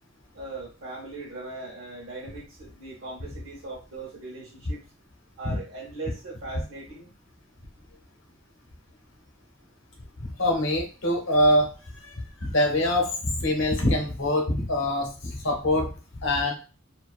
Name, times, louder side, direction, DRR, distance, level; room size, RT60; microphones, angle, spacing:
voice 1, 0.3-4.8 5.4-7.1, right 2 dB, 75° right, -6 dB, 0.7 m, -39 dB
voice 2, 10.4-11.7 12.1-15.9 16.2-16.5, left 1 dB, 65° left, 1 dB, 0.7 m, -24 dB
2.4 x 2.2 x 2.3 m, 0.34 s
head